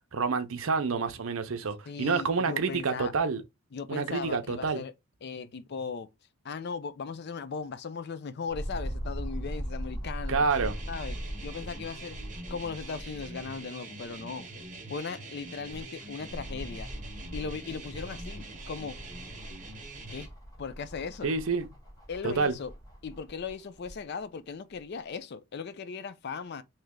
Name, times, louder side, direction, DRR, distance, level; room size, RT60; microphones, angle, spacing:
voice 1, 0.1-3.4 3.9-4.8 10.3-10.8 21.2-21.7 22.2-22.5, right 4 dB, 70° right, 0.6 m, -28 dB
voice 2, 1.9-3.1 3.7-4.9 5.2-6.1 6.4-10.4 10.9-12.2 12.5-14.4 14.9-16.9 17.3-19.0 20.1-20.3 20.6-21.3 22.1-22.7 23.0-26.6, left 5 dB, 50° left, 0.4 m, -38 dB
sound 1, 8.5-13.5 14.0-14.1 15.4-24.0 24.7-24.8, equal, 15° left, 0.9 m, -40 dB
sound 2, 10.5-20.3, right 2 dB, 35° right, 1.0 m, -44 dB
3.2 x 2.8 x 3.6 m
head